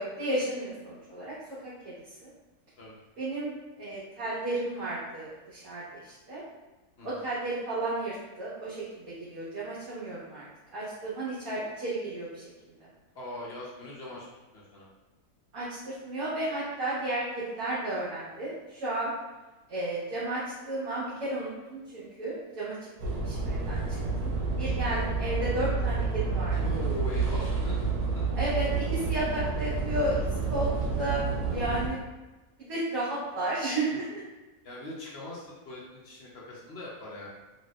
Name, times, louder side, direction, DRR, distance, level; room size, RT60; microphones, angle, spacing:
voice 1, 0.0-1.3 1.6-1.9 2.2-2.3 3.2-6.4 7.0-10.4 10.7-12.4 15.5-19.1 19.7-22.8 23.2-24.3 24.6-26.6 28.4-30.7 31.0-32.0 32.6-34.2, right 1 dB, 65° right, -10 dB, 1.3 m, -33 dB
voice 2, 7.0-7.3 13.1-14.3 14.5-14.9 26.5-28.3 34.6-37.3, left 1 dB, 55° left, -5 dB, 0.8 m, -41 dB
sound 1, 23.0-31.9, right 4 dB, 90° right, 1.2 m, -29 dB
3.2 x 2.7 x 2.2 m, 1.1 s
omnidirectional pair, 1.6 m